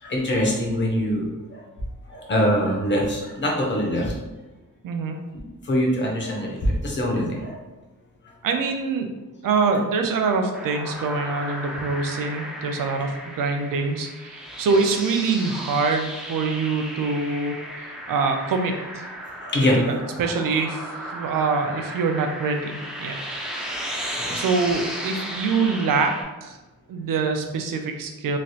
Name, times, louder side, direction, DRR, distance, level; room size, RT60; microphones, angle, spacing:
voice 1, 0.0-1.6 2.1-4.2 5.6-7.6 19.4-19.8 24.0-24.4, equal, 35° left, -1 dB, 0.6 m, -23 dB
voice 2, 4.8-5.2 8.4-9.1 9.4-17.6 18.1-19.0 19.6-23.2 24.3-26.1 26.4-26.6 26.9-28.4, right 4 dB, 75° right, 5 dB, 0.5 m, -24 dB
sound 1, 10.5-26.2, equal, ahead, 0.3 m, -35 dB
3.1 x 2.3 x 2.7 m, 1.1 s
wide cardioid pair, 180°, 34 cm